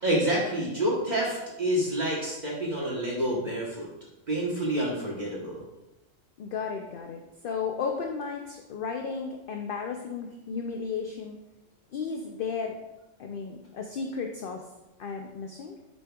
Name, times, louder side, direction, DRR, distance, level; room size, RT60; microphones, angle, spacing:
voice 1, 0.0-3.9 4.3-5.6, right 1 dB, 35° right, -4 dB, 1.2 m, -28 dB
voice 2, 6.4-11.4 11.9-12.8 13.2-14.6 15.0-15.7, left 5 dB, 60° left, 3 dB, 0.6 m, -34 dB
7.9 x 5.3 x 2.3 m, 1.0 s
omnidirectional pair, 1.3 m